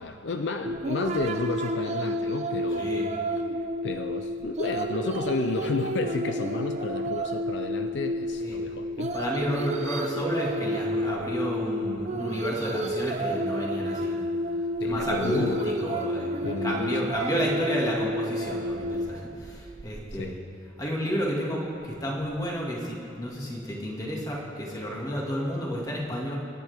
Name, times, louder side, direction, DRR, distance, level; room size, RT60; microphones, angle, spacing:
voice 1, 0.0-2.9 3.8-9.2 14.8-15.9 16.4-17.1 20.1-20.4, left 3 dB, 60° left, 7 dB, 0.5 m, -32 dB
sound 1, 0.6-20.2, equal, 35° right, 0.6 m, -30 dB
voice 2, 9.1-14.2 14.8-20.4 20.8-26.4, equal, 20° left, -3 dB, 2.1 m, -31 dB
25.0 x 10.5 x 3.5 m, 2.7 s
head